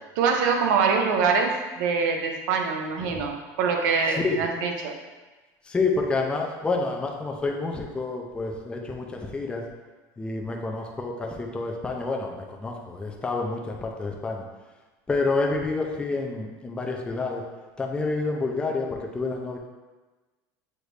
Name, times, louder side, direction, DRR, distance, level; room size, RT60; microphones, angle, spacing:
voice 1, 0.2-5.0, right 5 dB, 85° right, 3 dB, 0.7 m, -24 dB
voice 2, 5.6-9.6 10.2-14.4 15.1-17.4 17.8-19.6, left 3 dB, 10° left, 0 dB, 0.4 m, -28 dB
6.4 x 2.6 x 3.2 m, 1.2 s
cardioid pair, 145°, 10 cm